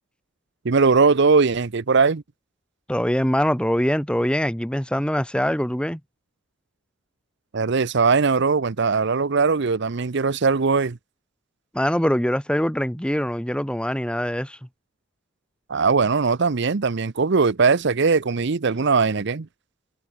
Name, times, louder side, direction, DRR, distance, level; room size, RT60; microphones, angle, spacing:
voice 1, 0.6-2.2 7.5-11.0 15.7-19.5, right 4 dB, 60° right, 0.7 m, -20 dB
voice 2, 2.9-6.0 11.7-14.6, equal, 5° left, 2.0 m, -23 dB
head